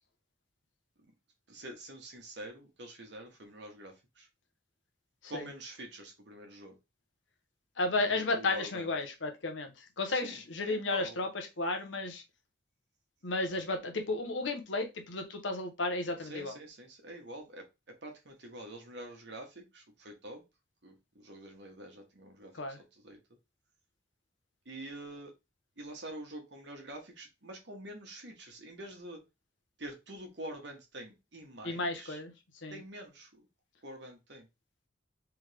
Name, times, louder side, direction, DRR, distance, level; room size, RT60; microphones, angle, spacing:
voice 1, 1.5-4.3 5.3-6.8 8.1-8.9 10.1-11.2 16.2-20.4 20.8-22.6 22.9-23.2 24.6-25.3 25.8-29.2 29.8-32.2 32.7-33.5 33.8-34.5, right 1 dB, 65° right, 1.3 m, -46 dB
voice 2, 7.8-12.2 13.2-16.5 22.6-22.8 31.6-32.3 32.6-32.8, left 2 dB, 85° left, 1.0 m, -33 dB
3.6 x 3.4 x 3.3 m
head